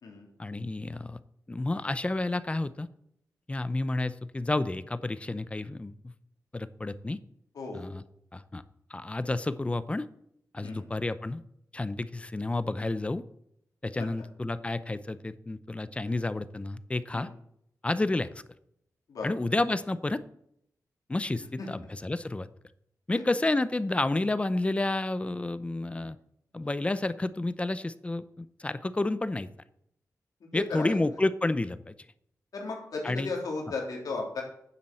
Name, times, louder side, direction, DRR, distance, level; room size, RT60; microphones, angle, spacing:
voice 1, 0.4-1.2 1.5-2.9 3.5-6.1 6.5-7.2 7.7-8.0 8.3-8.6 8.9-10.1 10.5-11.4 11.7-13.2 13.8-17.3 17.8-18.3 19.2-20.2 21.1-22.5 23.1-26.2 26.5-29.5 30.5-31.9 33.0-33.3, left 2 dB, 20° left, 14 dB, 0.7 m, -30 dB
voice 2, 7.5-7.9 10.6-10.8 14.0-14.1 17.1-17.3 19.1-19.3 21.6-21.7 23.1-23.2 30.5-31.0 32.5-34.4, left 3 dB, 80° left, -1 dB, 3.4 m, -35 dB
10.0 x 7.4 x 7.7 m, 0.74 s
wide cardioid pair, 120°, 6 cm